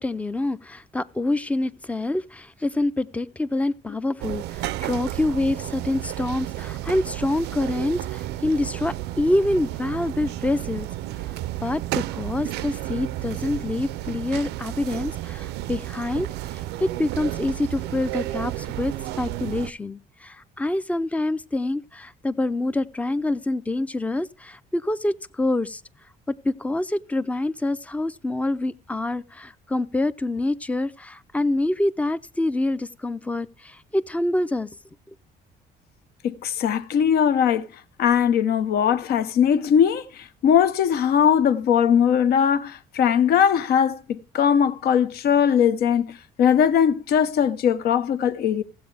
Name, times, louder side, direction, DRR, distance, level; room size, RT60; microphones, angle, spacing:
voice 1, 0.0-10.9 11.6-25.8 26.3-34.7, left 2 dB, 10° left, 0.4 m, -26 dB
sound 1, 4.2-19.7, right 15 dB, 80° right, 0.5 m, -32 dB
voice 2, 36.2-37.7 38.0-48.6, left 8 dB, 70° left, 0.8 m, -20 dB
15.5 x 7.8 x 3.3 m
cardioid pair, 110°, 17 cm